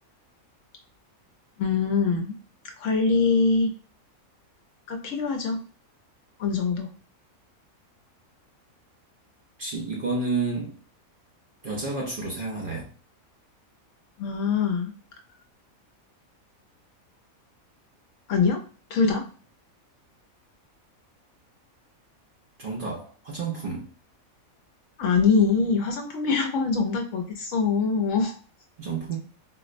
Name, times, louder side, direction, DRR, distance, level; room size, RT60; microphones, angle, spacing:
voice 1, 1.6-2.4 2.8-3.7 4.9-5.6 6.4-6.9 14.2-14.9 18.3-18.6 18.9-19.2 25.0-28.3, left 5 dB, 70° left, 2 dB, 0.8 m, -23 dB
voice 2, 9.6-10.7 11.6-12.9 22.6-23.9 28.8-29.2, right 3 dB, 50° right, -2 dB, 0.7 m, -30 dB
4.1 x 2.0 x 2.4 m, 0.40 s
omnidirectional pair, 1.5 m